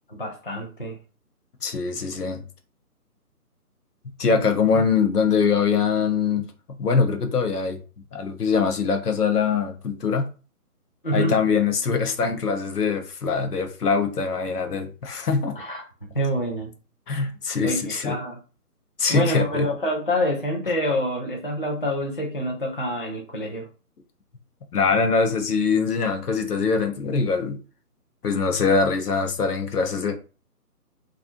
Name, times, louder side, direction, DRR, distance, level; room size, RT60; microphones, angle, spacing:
voice 1, 0.1-1.0 4.3-4.4 11.0-11.4 15.6-16.7 17.6-18.4 19.1-23.7, equal, 35° left, 0.4 m, -27 dB
voice 2, 1.6-2.4 4.2-6.4 6.8-7.8 8.1-10.3 11.1-15.6 17.1-18.2 19.0-19.7 24.7-27.6 28.2-30.2, left 5 dB, 75° left, 0.8 m, -23 dB
2.6 x 2.4 x 2.6 m
figure-of-eight pair, 150°, 46 cm